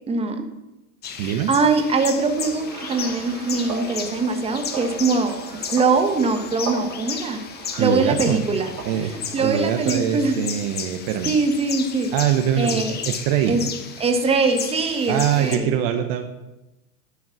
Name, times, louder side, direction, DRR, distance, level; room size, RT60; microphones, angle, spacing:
voice 1, 0.1-0.4 1.2-7.4 7.8-10.4 11.3-12.1 12.6-12.9 13.5-13.6 14.0-15.7, right 4 dB, 15° right, 5 dB, 1.2 m, -22 dB
sound 1, 1.0-15.6, left 7 dB, 20° left, 1.0 m, -34 dB
voice 2, 1.2-1.5 7.8-8.4 8.8-9.1 9.4-11.3 12.1-13.6 15.1-16.3, right 9 dB, 40° right, 7 dB, 0.9 m, -23 dB
sound 2, 2.2-9.7, right 4 dB, 80° right, 2.8 m, -37 dB
11.0 x 6.4 x 5.9 m, 0.97 s
hypercardioid pair, 115°, 45 cm